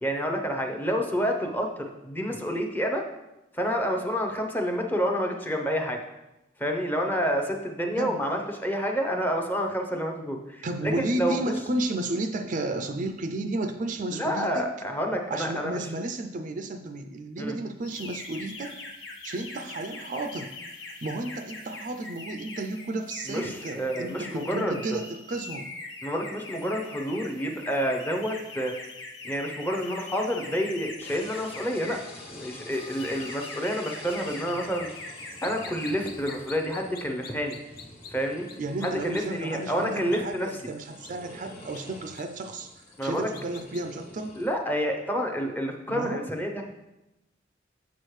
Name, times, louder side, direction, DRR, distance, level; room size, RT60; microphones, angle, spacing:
voice 1, 0.0-3.0 3.5-6.0 6.6-11.5 14.1-15.8 17.4-17.6 23.3-25.0 26.0-28.7 29.2-32.0 32.3-34.9 35.4-37.6 38.1-38.5 38.8-40.6 43.0-43.3 44.4-46.6, equal, 10° left, 3 dB, 0.6 m, -29 dB
voice 2, 10.6-14.7 15.3-18.8 19.2-20.5 21.0-25.7 38.6-42.7 43.0-44.4 45.9-46.3, right 2 dB, 40° right, 7 dB, 0.4 m, -32 dB
sound 1, 17.8-32.1 32.7-35.9 36.2-36.5, left 3 dB, 65° left, 1.1 m, -42 dB
sound 2, 31.0-44.5, left 1 dB, 30° left, 1.5 m, -47 dB
sound 3, 35.4-38.1 38.5-38.6 38.8-39.2 40.1-40.2 41.0-41.1 41.7-41.8 42.1-42.2 43.0-43.8, left 6 dB, 50° left, 0.5 m, -44 dB
7.0 x 6.2 x 3.2 m, 0.96 s
head